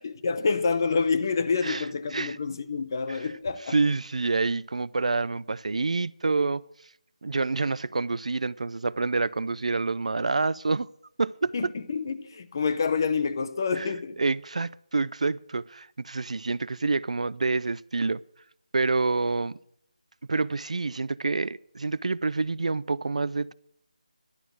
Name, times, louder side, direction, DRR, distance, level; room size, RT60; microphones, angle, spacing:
voice 1, 0.0-3.7 11.5-14.2, left 5 dB, 30° left, 0.7 m, -27 dB
voice 2, 1.6-2.4 3.1-3.3 3.7-6.6 7.2-10.9 11.2-11.7 13.7-18.2 18.7-19.6 20.3-23.5, right 3 dB, 60° right, 0.3 m, -27 dB
11.5 x 6.3 x 9.1 m
figure-of-eight pair, 170°, 4 cm